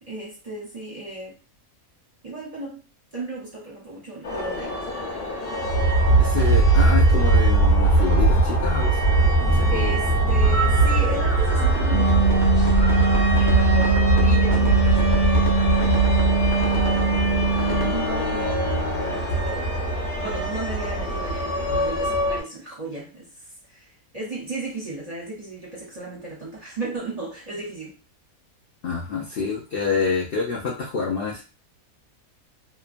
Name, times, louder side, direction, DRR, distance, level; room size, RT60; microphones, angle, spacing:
voice 1, 0.0-1.4 2.2-2.9 3.1-4.8 9.7-12.7 13.4-15.4 16.6-17.5 17.9-19.8 20.2-23.3 23.7-28.0 29.4-29.5, right 2 dB, 35° right, 0.7 m, -35 dB
sound 1, 4.2-22.4, right 2 dB, 45° left, 0.9 m, -21 dB
voice 2, 6.2-9.0 9.5-10.0 28.8-31.4, left 4 dB, 65° left, 0.6 m, -27 dB
sound 2, 11.9-17.9, right 4 dB, 25° left, 0.6 m, -22 dB
Bowed string instrument, 14.6-19.3, left 4 dB, 85° left, 1.2 m, -34 dB
2.9 x 2.1 x 2.5 m
omnidirectional pair, 1.5 m